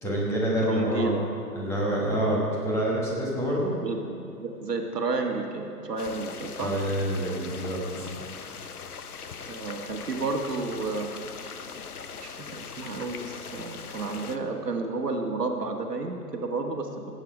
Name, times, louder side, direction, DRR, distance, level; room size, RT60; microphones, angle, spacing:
voice 1, 0.0-1.1 1.5-3.8 6.6-8.0, right 1 dB, 5° left, -4 dB, 1.4 m, -27 dB
voice 2, 0.6-1.2 3.8-4.0 4.3-6.7 9.4-11.1 12.2-17.1, right 3 dB, 75° right, 2 dB, 1.7 m, -31 dB
sound 1, 6.0-14.4, left 6 dB, 65° left, 0.9 m, -41 dB
17.5 x 8.3 x 4.9 m, 2.7 s
figure-of-eight pair, 140°, 49 cm